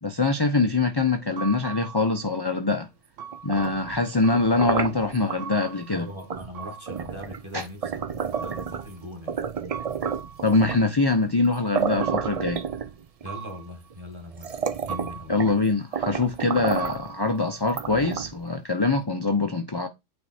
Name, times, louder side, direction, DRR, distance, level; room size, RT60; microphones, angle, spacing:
voice 1, 0.0-2.9 3.4-6.1 7.5-7.7 10.4-12.6 15.3-19.9, left 3 dB, 25° left, 0.6 m, -24 dB
sound 1, 1.0-2.5 3.2-7.5 8.3-9.1 9.7-10.6 12.0-13.0 13.2-14.0 14.9-15.7 16.8-17.9, right 7 dB, 75° right, 1.1 m, -41 dB
sound 2, 3.3-5.4 6.3-6.5 6.9-8.9 9.3-10.9 11.4-11.5 11.7-13.2 13.9-14.0 14.3-15.6 15.9-17.1 17.7-18.5, right 7 dB, 45° right, 0.4 m, -31 dB
voice 2, 5.9-9.4 13.2-15.4, equal, 20° right, 1.6 m, -40 dB
8.8 x 3.5 x 4.3 m
omnidirectional pair, 1.3 m